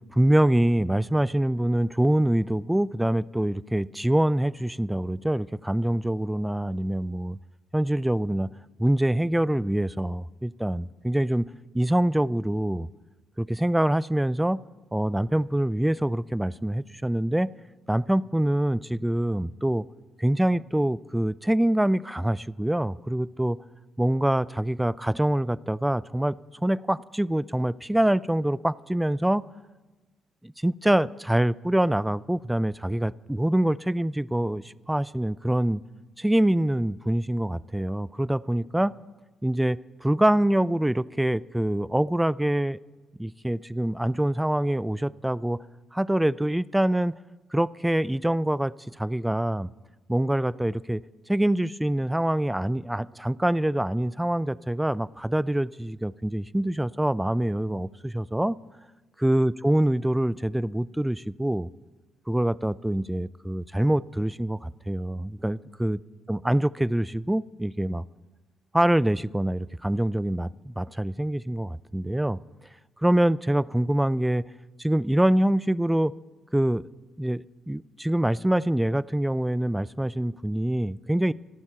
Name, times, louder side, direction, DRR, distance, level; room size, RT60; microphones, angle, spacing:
voice 1, 0.1-7.4 7.7-8.5 8.8-11.5 11.7-12.9 13.4-14.6 14.9-17.5 17.9-19.9 20.2-23.6 24.0-29.4 30.4-35.8 36.2-38.9 39.4-42.8 43.2-45.6 45.9-47.1 47.5-49.7 50.1-51.0 51.3-58.6 59.2-61.7 62.3-66.0 66.3-68.0 68.7-72.4 73.0-74.4 74.8-76.1 76.5-76.8 77.2-81.3, right 1 dB, 10° right, 21 dB, 0.5 m, -25 dB
25.5 x 12.0 x 4.4 m, 1.2 s
hypercardioid pair, 50°, 0 cm